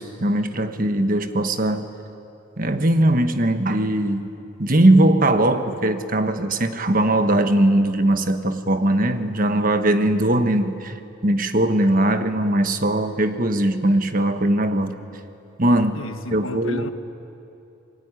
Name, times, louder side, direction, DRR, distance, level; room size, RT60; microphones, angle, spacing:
voice 1, 0.0-1.9 2.6-4.3 4.6-10.9 11.2-15.0 15.6-16.0 16.3-16.9, right 1 dB, 40° right, 8 dB, 1.4 m, -20 dB
voice 2, 15.9-16.9, left 1 dB, 75° left, 9 dB, 1.3 m, -33 dB
26.0 x 23.0 x 9.8 m, 2.7 s
head